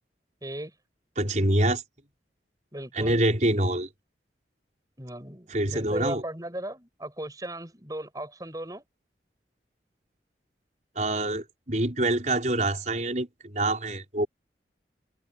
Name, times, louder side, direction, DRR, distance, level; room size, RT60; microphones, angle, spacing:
voice 1, 0.4-0.7 2.7-3.2 5.0-8.8, right 1 dB, 20° right, 7.8 m, -37 dB
voice 2, 1.2-1.8 2.9-3.9 5.5-6.2 11.0-14.3, right 1 dB, 45° right, 5.1 m, -26 dB
head